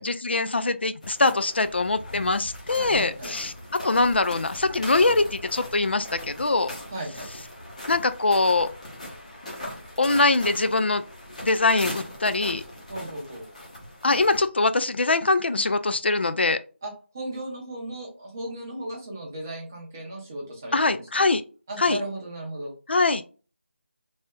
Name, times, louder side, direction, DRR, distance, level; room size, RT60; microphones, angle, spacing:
voice 1, 0.0-3.5 3.8-6.7 7.9-8.7 10.0-11.0 11.4-12.6 14.0-16.6 20.7-21.4 21.8-22.0 22.9-23.2, left 3 dB, 55° left, 0.3 m, -23 dB
sound 1, 1.0-14.5, left 1 dB, 35° left, 0.9 m, -40 dB
voice 2, 2.8-3.4 6.9-7.3 12.9-13.5 16.8-21.2 21.7-22.7, right 1 dB, 15° right, 0.6 m, -36 dB
3.3 x 2.6 x 2.2 m
figure-of-eight pair, 175°, 7 cm